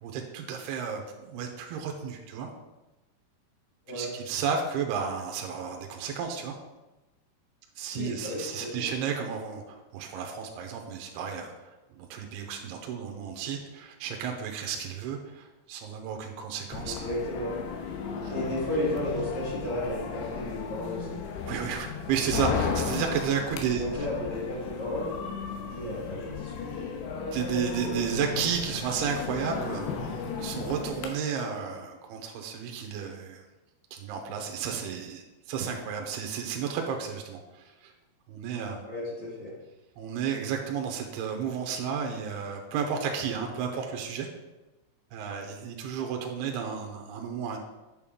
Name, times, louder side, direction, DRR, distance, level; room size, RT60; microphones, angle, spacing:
voice 1, 0.0-2.5 3.9-6.6 7.8-11.5 11.9-17.0 21.5-23.8 27.3-33.4 33.9-37.9 38.3-38.8 40.0-44.3 45.1-47.6, right 7 dB, 80° right, 2 dB, 2.7 m, -32 dB
voice 2, 7.9-8.9 16.8-17.5 18.2-21.2 23.8-25.1 25.7-26.8 38.8-39.5, left 1 dB, 50° left, -7 dB, 2.8 m, -33 dB
sound 1, 16.7-31.1, left 5 dB, 90° left, 3.0 m, -35 dB
8.5 x 6.5 x 3.7 m, 1.1 s
omnidirectional pair, 4.9 m